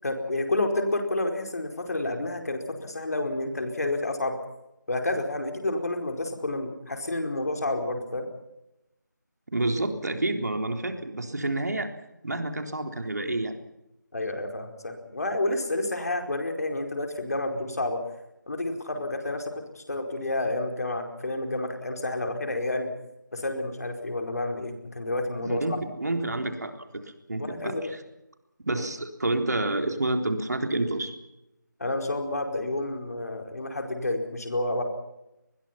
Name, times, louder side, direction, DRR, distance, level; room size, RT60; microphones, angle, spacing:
voice 1, 0.0-4.4 4.9-8.3 14.1-18.0 18.5-22.9 23.3-25.6 27.4-27.9 31.8-34.8, left 2 dB, 55° left, 4 dB, 4.8 m, -30 dB
voice 2, 9.5-11.9 12.2-13.5 25.4-28.0 28.7-31.1, right 2 dB, 60° right, 5 dB, 3.7 m, -29 dB
25.5 x 21.0 x 5.8 m, 0.91 s
figure-of-eight pair, 170°, 10 cm